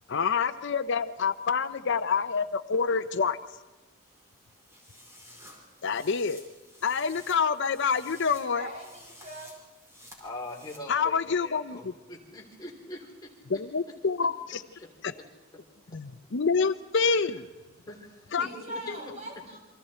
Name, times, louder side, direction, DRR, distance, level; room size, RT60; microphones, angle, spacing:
voice 1, 0.1-3.4 5.8-6.4 6.8-8.7 10.9-11.9 13.5-14.6 15.0-15.1 15.9-17.5 18.3-18.5 18.9-19.0, left 5 dB, 60° left, 11 dB, 0.7 m, -27 dB
sound 1, 4.0-10.8, left 1 dB, 15° right, 4.8 m, -53 dB
voice 2, 8.5-9.5 18.4-19.6, right 1 dB, 35° right, 0 dB, 5.8 m, -41 dB
voice 3, 10.2-13.1 17.9-19.1, left 2 dB, 20° left, -1 dB, 3.7 m, -42 dB
28.5 x 25.0 x 4.4 m, 1.2 s
head